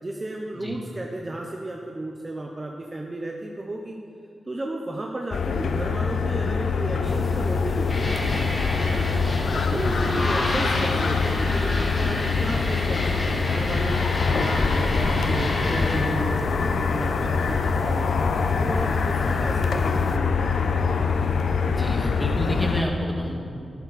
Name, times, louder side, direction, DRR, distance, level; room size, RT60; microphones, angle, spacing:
voice 1, 0.0-4.0 4.5-9.1 9.4-14.0 14.3-18.2 18.6-20.9, right 1 dB, 25° right, 1 dB, 0.8 m, -33 dB
sound 1, 5.3-22.8, left 5 dB, 80° left, 0.7 m, -24 dB
sound 2, 7.0-20.2, left 1 dB, 15° left, 0.6 m, -34 dB
sound 3, 7.9-16.0, left 1 dB, 45° left, 2.8 m, -30 dB
voice 2, 21.7-23.3, equal, ahead, -1 dB, 1.9 m, -29 dB
14.0 x 11.5 x 4.2 m, 2.3 s
wide cardioid pair, 105°, 0 cm